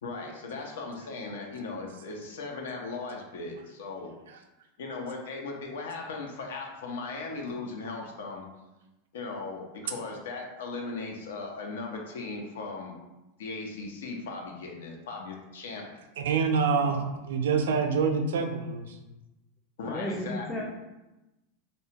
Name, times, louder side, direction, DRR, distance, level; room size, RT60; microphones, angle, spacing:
voice 1, 0.0-4.1 4.8-8.5 9.1-12.9 13.4-16.0 16.8-17.0 19.8-20.6, left 3 dB, 85° left, 1 dB, 0.6 m, -38 dB
voice 2, 16.2-17.0 17.3-19.0, right 5 dB, 90° right, 4 dB, 0.4 m, -26 dB
voice 3, 19.8-20.6, left 1 dB, 15° left, -2 dB, 0.3 m, -33 dB
2.7 x 2.1 x 2.7 m, 0.99 s
supercardioid pair, 150°, 0 cm